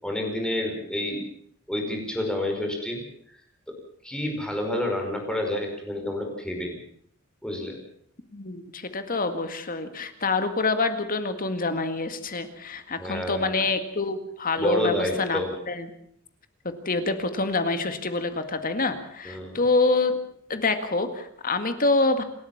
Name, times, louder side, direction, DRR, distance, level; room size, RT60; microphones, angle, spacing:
voice 1, 0.0-1.2 1.7-3.4 4.0-6.8 7.4-7.8 13.0-13.6 14.6-15.5 19.2-19.6, left 1 dB, 5° left, 2 dB, 5.2 m, -29 dB
voice 2, 8.3-15.4 15.7-15.9 16.6-20.2 20.5-22.2, left 3 dB, 40° left, 9 dB, 2.0 m, -26 dB
28.5 x 13.0 x 7.3 m, 0.66 s
head